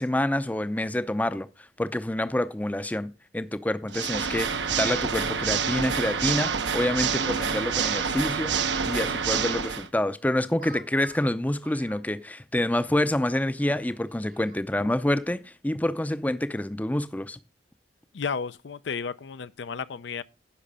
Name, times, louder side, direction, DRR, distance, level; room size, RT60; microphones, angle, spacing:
voice 1, 0.0-8.6 8.9-17.4, left 1 dB, 10° left, 0.5 m, -27 dB
Water / Mechanisms, 3.9-9.9, right 6 dB, 75° right, 0.8 m, -27 dB
Speech, 4.2-4.8 5.9-8.9 10.6-12.3 12.6-12.7 13.2-14.6, right 5 dB, 45° right, 1.0 m, -46 dB
voice 2, 18.1-20.2, left 5 dB, 75° left, 0.5 m, -33 dB
10.0 x 5.8 x 5.4 m
head